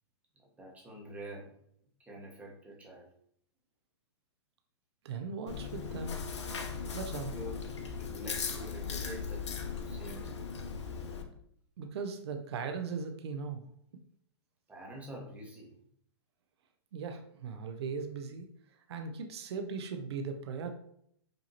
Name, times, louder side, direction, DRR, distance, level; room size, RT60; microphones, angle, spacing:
voice 1, 0.4-1.5 2.0-3.1 7.3-7.6 8.0-9.4 9.9-10.4 14.7-15.8, equal, 10° right, -2 dB, 1.0 m, -46 dB
voice 2, 5.0-6.2 6.9-7.3 11.8-13.7 16.9-18.5 18.9-20.7, right 5 dB, 65° right, 5 dB, 0.6 m, -38 dB
Chewing mastication, 5.5-11.2, left 5 dB, 75° left, 0.7 m, -38 dB
5.1 x 2.8 x 2.8 m, 0.69 s
hypercardioid pair, 125°, 15 cm